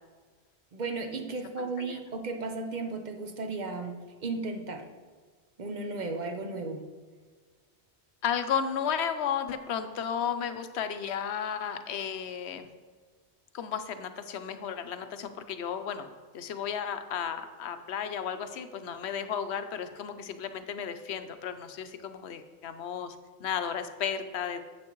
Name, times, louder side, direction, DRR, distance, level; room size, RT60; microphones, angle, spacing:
voice 1, 0.7-4.8 5.6-6.9, right 3 dB, 45° right, 5 dB, 0.9 m, -35 dB
voice 2, 8.2-12.7 13.5-16.1 16.3-24.6, left 7 dB, 75° left, 9 dB, 0.9 m, -33 dB
10.5 x 7.7 x 3.0 m, 1.5 s
omnidirectional pair, 1.1 m